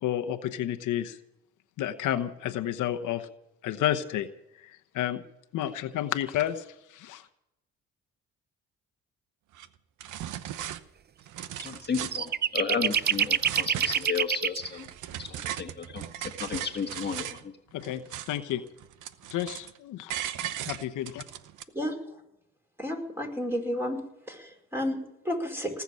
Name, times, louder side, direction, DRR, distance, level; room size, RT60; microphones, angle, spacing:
voice 1, 0.0-1.2 1.8-3.3 3.6-4.3 4.6-5.2 5.5-7.2 17.7-18.0 18.3-18.6 19.3-20.1 20.4-21.2, left 12 dB, 85° left, 8 dB, 1.1 m, -31 dB
sound 1, 9.5-9.7 10.0-10.8 11.2-12.3 12.7-14.2 14.6-17.4 17.8-18.5 18.8-19.8 20.1-21.6, right 11 dB, 85° right, 0.9 m, -38 dB
voice 2, 11.6-14.9 15.2-17.5, left 6 dB, 35° left, 3 dB, 1.6 m, -33 dB
sound 2, 11.6-11.7 12.1-14.6, right 8 dB, 35° right, 0.5 m, -25 dB
voice 3, 22.8-24.0 24.3-25.8, equal, 10° right, 2 dB, 4.8 m, -31 dB
19.0 x 7.1 x 9.6 m, 0.84 s
cardioid pair, 90°, 30 cm